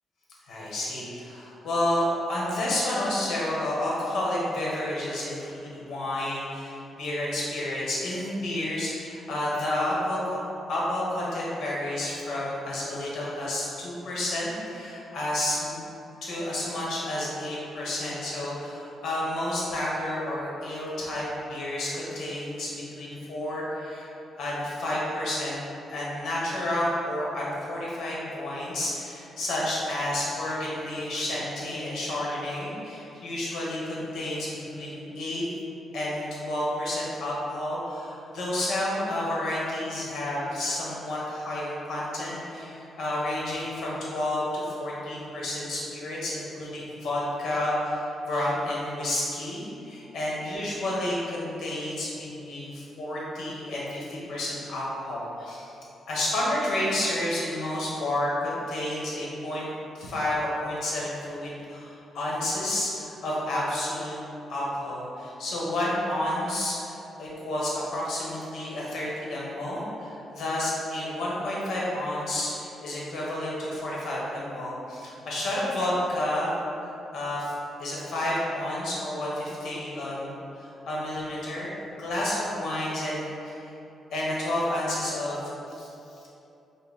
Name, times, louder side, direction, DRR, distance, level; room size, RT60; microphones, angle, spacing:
voice 1, 0.5-10.4 10.7-15.8 16.2-24.1 24.4-25.6 25.9-35.4 35.9-55.7 56.1-59.7 59.9-64.1 64.5-77.5 77.8-83.7 84.1-85.9 86.2-86.3, left 1 dB, 60° left, -6 dB, 1.1 m, -30 dB
5.3 x 2.1 x 4.0 m, 2.9 s
cardioid pair, 170°, 0 cm